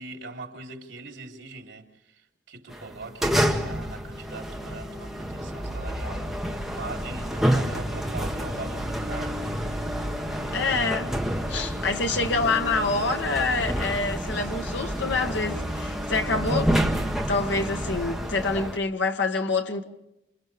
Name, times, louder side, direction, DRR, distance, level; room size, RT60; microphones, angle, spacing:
voice 1, 0.0-9.6, right 3 dB, 80° right, 3.5 m, -41 dB
sound 1, 2.7-18.8, equal, ahead, 1.6 m, -29 dB
voice 2, 10.5-11.1 11.5-16.7 17.0-19.8, left 3 dB, 75° left, 1.7 m, -26 dB
29.0 x 28.5 x 3.5 m
head